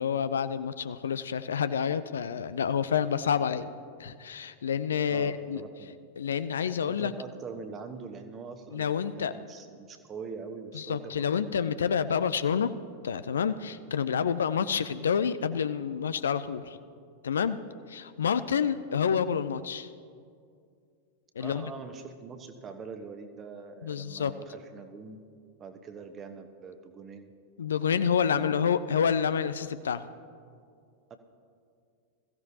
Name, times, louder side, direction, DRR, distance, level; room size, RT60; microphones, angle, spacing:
voice 1, 0.0-3.7 4.0-5.6 6.2-7.1 8.7-9.3 10.7-12.7 13.0-16.8 17.2-17.6 17.9-19.9 21.4-21.7 23.8-24.3 27.6-30.0, left 7 dB, 65° left, 13 dB, 0.4 m, -28 dB
voice 2, 5.1-6.0 6.9-11.8 21.4-25.2 25.6-27.3 28.3-28.6 31.1-31.2, right 5 dB, 25° right, 7 dB, 1.2 m, -43 dB
21.5 x 15.0 x 2.9 m, 2.3 s
figure-of-eight pair, 90°, 0 cm